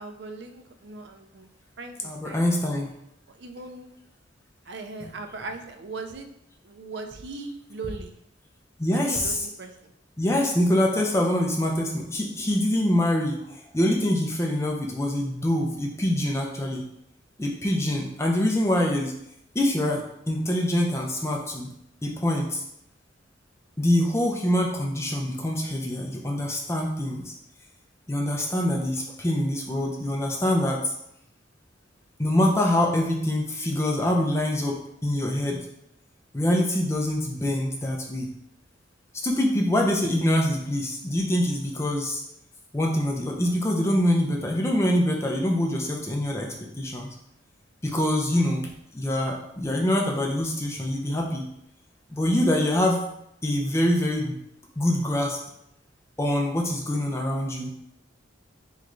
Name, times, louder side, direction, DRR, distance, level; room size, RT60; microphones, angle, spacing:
voice 1, 0.0-1.5 1.8-2.4 3.3-3.9 4.7-6.3 6.6-8.2 8.9-9.9, right 3 dB, 60° right, 6 dB, 0.4 m, -39 dB
voice 2, 2.0-2.9 5.0-5.1 8.8-9.5 10.2-16.8 17.4-19.1 19.5-21.7 22.0-22.6 23.8-27.3 28.1-30.9 32.2-35.7 36.3-38.3 39.2-42.2 42.7-47.1 47.8-51.4 52.1-53.0 53.4-54.4 54.8-55.4 56.2-57.7, left 1 dB, 15° left, 0 dB, 0.5 m, -25 dB
3.4 x 3.1 x 3.7 m, 0.77 s
head